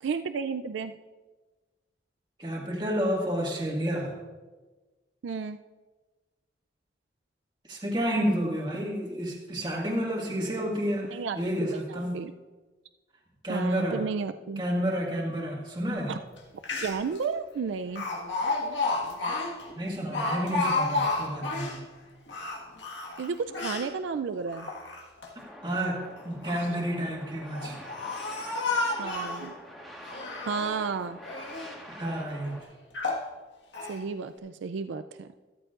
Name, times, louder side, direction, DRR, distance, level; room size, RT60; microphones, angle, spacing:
voice 1, 0.0-1.0 5.2-5.6 11.1-11.4 11.7-12.3 13.5-14.6 16.1-16.2 16.8-18.1 23.2-24.7 29.0-29.5 30.5-31.2 33.9-35.3, right 5 dB, 80° right, 10 dB, 0.4 m, -32 dB
voice 2, 2.4-4.1 7.7-12.3 13.4-14.0 14.6-16.1 19.7-21.8 25.6-27.8 31.9-32.6, equal, 25° right, -1 dB, 1.8 m, -30 dB
Speech, 16.4-16.5 16.6-17.2 18.0-21.8 22.3-23.9 24.5-25.3 26.2-26.8 27.5-29.5 30.0-30.8 31.2-31.7 32.3-32.4 32.9-33.3 33.7-34.0, left 3 dB, 70° left, 1.6 m, -31 dB
sound 1, 25.4-32.6, equal, ahead, 1.4 m, -46 dB
14.0 x 13.0 x 2.5 m, 1.3 s
head